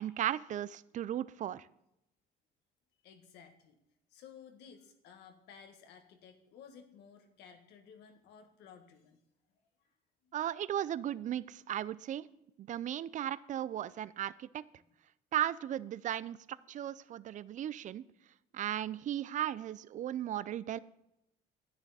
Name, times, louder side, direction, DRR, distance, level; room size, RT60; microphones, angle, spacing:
voice 1, 0.0-1.7 10.3-12.3 12.6-14.6 15.3-18.0 18.5-20.8, right 11 dB, 50° right, 18 dB, 0.5 m, -36 dB
voice 2, 3.0-3.8 4.1-9.2 10.2-10.4 14.8-14.9, left 7 dB, 80° left, 6 dB, 1.6 m, -56 dB
10.5 x 9.8 x 4.1 m, 0.83 s
cardioid pair, 110°, 17 cm